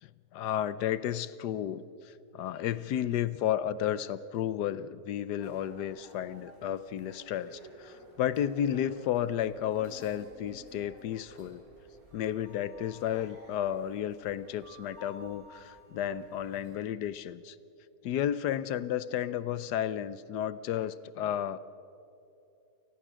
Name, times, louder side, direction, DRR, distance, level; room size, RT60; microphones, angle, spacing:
voice 1, 0.0-11.6 12.1-17.6 18.0-21.6, left 10 dB, 80° left, 16 dB, 1.3 m, -32 dB
sound 1, 5.4-16.9, equal, 60° right, 5.6 m, -54 dB
29.0 x 19.0 x 6.3 m, 2.7 s
omnidirectional pair, 1.7 m